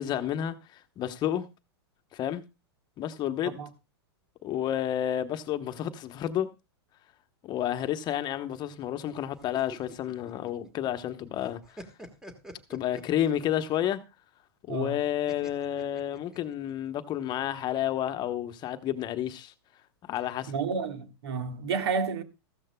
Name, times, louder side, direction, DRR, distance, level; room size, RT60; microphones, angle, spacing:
voice 1, 0.0-1.5 2.1-2.4 3.0-3.6 4.4-6.5 7.4-11.8 12.7-14.0 14.7-19.5 20.0-20.5, left 11 dB, 30° left, 1.0 m, -30 dB
sound 1, 9.4-11.1 11.4-13.6 15.3-16.7, equal, 5° right, 1.5 m, -47 dB
voice 2, 14.7-15.0 20.5-22.2, right 5 dB, 75° right, 1.7 m, -31 dB
15.0 x 14.0 x 2.2 m
hypercardioid pair, 125°, 14 cm